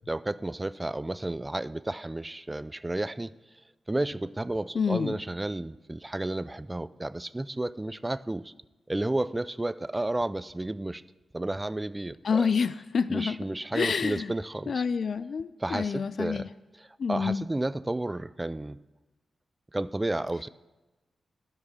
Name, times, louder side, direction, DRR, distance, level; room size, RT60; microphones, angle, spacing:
voice 1, 0.1-3.3 3.9-8.5 8.9-11.0 11.3-12.5 13.1-14.8 15.6-16.5 16.8-18.8 19.7-20.5, right 2 dB, 20° right, 17 dB, 0.3 m, -32 dB
voice 2, 4.7-5.1 12.2-13.4 13.7-14.3 14.7-16.5 17.0-17.4, left 5 dB, 65° left, 14 dB, 0.3 m, -28 dB
12.5 x 5.5 x 6.1 m, 1.1 s
cardioid pair, 75°, 0 cm